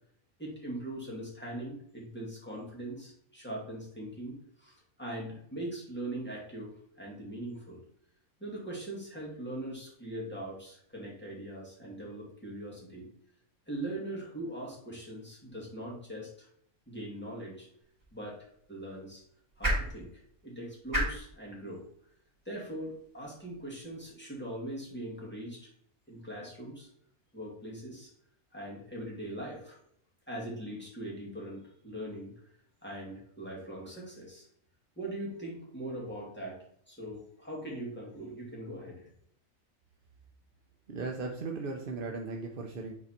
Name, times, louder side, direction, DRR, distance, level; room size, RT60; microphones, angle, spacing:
voice 1, 0.4-6.7 7.0-7.8 8.4-13.1 13.7-16.5 16.9-17.7 18.1-19.2 19.6-21.8 22.5-25.7 26.1-26.9 27.3-28.1 28.5-29.8 30.3-32.3 32.8-34.5 35.0-36.6 36.9-39.1, right 1 dB, 5° left, -4 dB, 2.3 m, -41 dB
sound 1, 17.8-24.0, right 1 dB, 15° right, 2.4 m, -38 dB
voice 2, 40.9-42.9, right 3 dB, 50° right, 1 dB, 0.8 m, -37 dB
7.0 x 4.0 x 4.4 m, 0.66 s
omnidirectional pair, 1.5 m